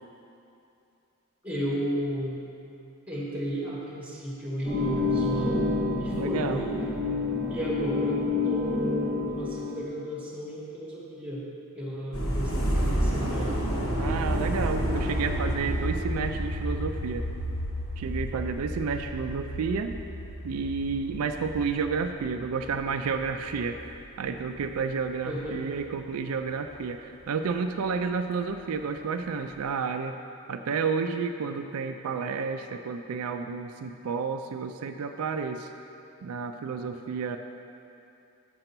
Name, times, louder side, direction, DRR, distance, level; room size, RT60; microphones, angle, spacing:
voice 1, 1.4-2.4 3.1-6.7 7.5-8.2 8.4-11.5 11.8-13.6 25.2-25.6, equal, 5° right, -6 dB, 1.9 m, -33 dB
sound 1, 4.6-9.8, left 3 dB, 10° left, 1.4 m, -28 dB
voice 2, 6.1-6.6 14.0-17.2 18.0-20.0 20.4-30.1 30.5-35.7 36.2-37.4, right 5 dB, 75° right, 7 dB, 0.4 m, -31 dB
sound 2, 12.1-24.7 25.1-25.9 26.5-26.7, equal, 70° left, 1.4 m, -31 dB
6.8 x 6.6 x 5.9 m, 2.7 s
head